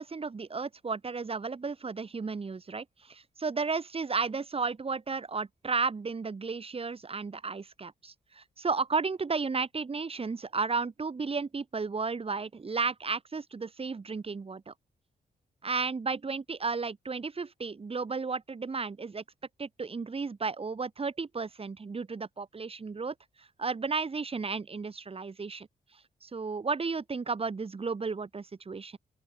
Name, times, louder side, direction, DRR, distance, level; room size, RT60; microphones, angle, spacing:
voice 1, 0.0-14.7 15.6-19.2 19.6-25.7 26.2-29.0, right 4 dB, 40° right, 4.9 m, -33 dB
open air
cardioid pair, 85°, 16 cm